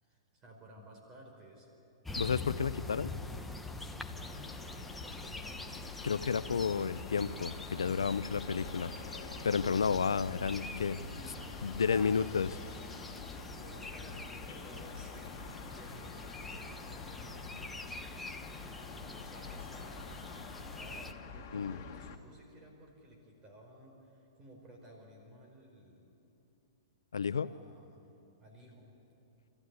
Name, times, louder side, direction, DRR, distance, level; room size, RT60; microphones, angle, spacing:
voice 1, 0.0-1.7 4.5-5.7 11.0-12.4 13.5-17.8 18.6-26.0 27.3-28.0 28.4-28.9, right 1 dB, 30° right, 1 dB, 5.1 m, -55 dB
voice 2, 2.1-3.1 6.0-8.9 9.4-11.0 11.6-12.5 21.5-21.8 27.1-27.5, left 6 dB, 85° left, 16 dB, 0.6 m, -31 dB
sound 1, 2.1-21.1, left 2 dB, 5° left, 1.2 m, -45 dB
sound 2, 4.1-22.2, left 4 dB, 45° left, 2.1 m, -47 dB
28.5 x 14.5 x 9.8 m, 2.9 s
hypercardioid pair, 120°, 2 cm